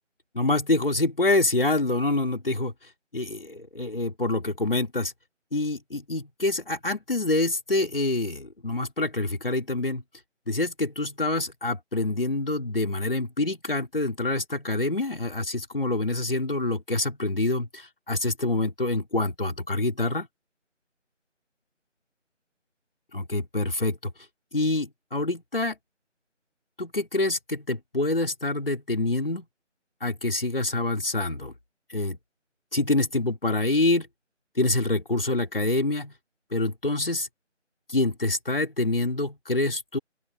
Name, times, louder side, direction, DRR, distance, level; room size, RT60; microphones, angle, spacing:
voice 1, 0.3-2.7 3.1-5.1 5.5-10.0 10.5-20.3 23.1-24.1 24.5-25.8 26.8-29.5 30.0-31.5 31.9-32.2 32.7-34.1 34.6-36.1 36.5-37.3 37.9-40.0, left 2 dB, 50° left, 5.3 m, -26 dB
open air
figure-of-eight pair, 180°, 37 cm